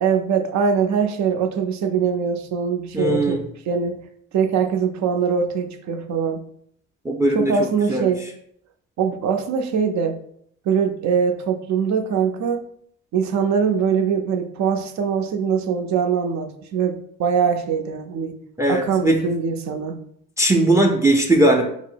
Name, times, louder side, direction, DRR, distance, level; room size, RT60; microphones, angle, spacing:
voice 1, 0.0-4.1 4.3-6.4 7.3-8.3 9.0-10.2 10.7-12.6 13.1-18.4 18.7-20.0, right 6 dB, 65° right, 7 dB, 0.6 m, -22 dB
voice 2, 2.9-3.4 7.0-7.5 7.9-8.1 18.6-19.2 20.4-21.6, right 1 dB, 10° right, 3 dB, 0.4 m, -18 dB
4.2 x 2.0 x 4.4 m, 0.68 s
cardioid pair, 90°, 30 cm